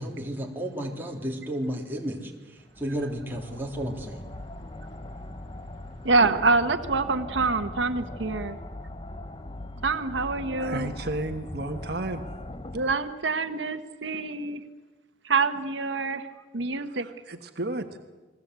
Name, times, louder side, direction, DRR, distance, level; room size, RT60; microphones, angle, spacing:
voice 1, 0.0-4.2, equal, 10° right, -1 dB, 3.4 m, -33 dB
sound 1, 2.6-12.9, left 1 dB, 25° left, 0.9 m, -40 dB
voice 2, 6.0-8.6 9.8-10.9 12.7-14.6 15.2-16.3 16.5-17.1, right 3 dB, 80° right, 8 dB, 1.2 m, -26 dB
voice 3, 10.6-12.2 16.9-18.0, right 2 dB, 60° right, 5 dB, 1.4 m, -33 dB
29.5 x 21.0 x 8.2 m, 1.2 s
head